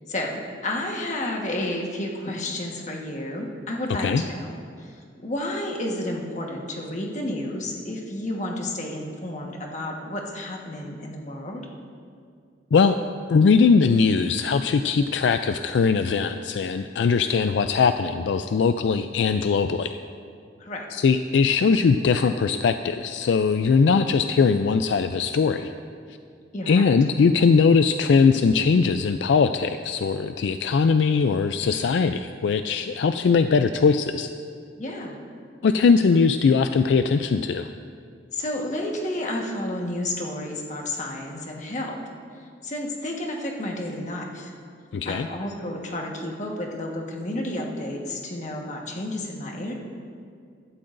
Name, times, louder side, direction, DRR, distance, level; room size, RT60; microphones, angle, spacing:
voice 1, 0.1-11.7 20.6-20.9 26.5-26.9 34.8-35.2 38.3-42.0 42.3-44.5 45.0-49.7, left 1 dB, 45° left, 0 dB, 1.4 m, -31 dB
voice 2, 13.3-20.0 20.9-25.7 26.7-34.3 35.6-37.7 44.9-45.3, left 5 dB, 75° left, 9 dB, 0.3 m, -20 dB
15.5 x 12.5 x 2.6 m, 2.2 s
head